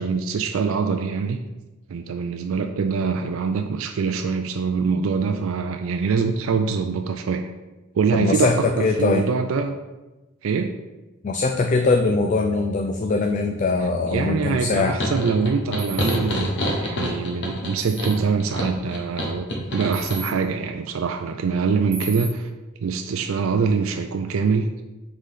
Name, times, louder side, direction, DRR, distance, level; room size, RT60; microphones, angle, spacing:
voice 1, 0.0-1.4 1.9-7.5 7.9-9.7 10.4-10.7 14.1-19.5 19.7-22.5 22.8-24.6, right 5 dB, 75° right, 5 dB, 0.4 m, -24 dB
voice 2, 8.1-9.2 11.2-15.0, left 3 dB, 35° left, 4 dB, 0.3 m, -21 dB
sound 1, 15.0-20.2, equal, 60° left, 1.1 m, -27 dB
sound 2, 15.8-16.2 17.8-18.2 19.9-20.3 21.9-22.3, right 3 dB, 50° right, 1.0 m, -35 dB
5.6 x 3.9 x 4.9 m, 1.1 s
head